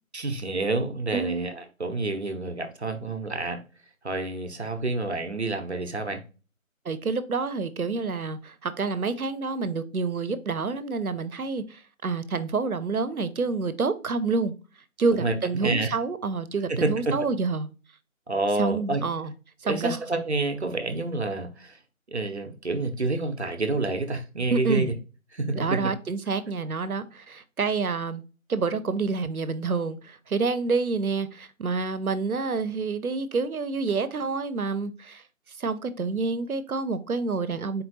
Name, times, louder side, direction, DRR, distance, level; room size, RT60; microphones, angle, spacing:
voice 1, 0.1-3.6 4.0-6.2 15.1-16.0 16.7-17.1 18.3-19.0 19.6-21.8 22.1-24.9 25.3-25.8, right 2 dB, 50° right, 0.7 m, -28 dB
voice 2, 1.1-1.5 6.8-14.5 15.0-17.7 18.6-19.3 19.6-20.0 24.5-24.9 25.5-28.2 28.5-35.2 35.6-37.8, right 4 dB, 85° right, 0.7 m, -28 dB
4.3 x 3.7 x 2.7 m
figure-of-eight pair, 165°, 42 cm